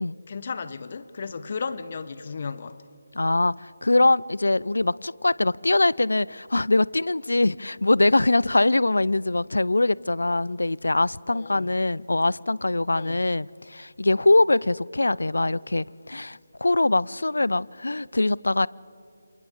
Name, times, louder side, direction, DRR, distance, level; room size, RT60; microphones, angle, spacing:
voice 1, 0.3-2.8 11.3-11.7 12.9-13.2, left 5 dB, 45° left, 0.9 m, -34 dB
voice 2, 3.1-18.7, left 2 dB, 75° left, 0.4 m, -23 dB
28.5 x 27.5 x 3.7 m
figure-of-eight pair, 155°, 0 cm